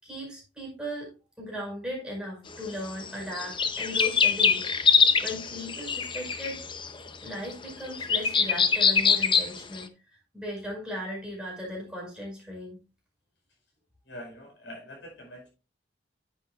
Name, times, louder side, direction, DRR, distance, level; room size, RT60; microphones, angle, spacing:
voice 1, 0.0-1.1 1.4-4.7 5.2-6.6 7.2-9.9 10.3-12.8, left 1 dB, 5° right, -3 dB, 5.3 m, -37 dB
sound 1, 2.5-2.6 2.8-9.8, left 5 dB, 25° left, 0.7 m, -24 dB
voice 2, 14.0-15.5, equal, 90° left, 0 dB, 5.1 m, -44 dB
9.8 x 8.5 x 2.4 m, 0.30 s
head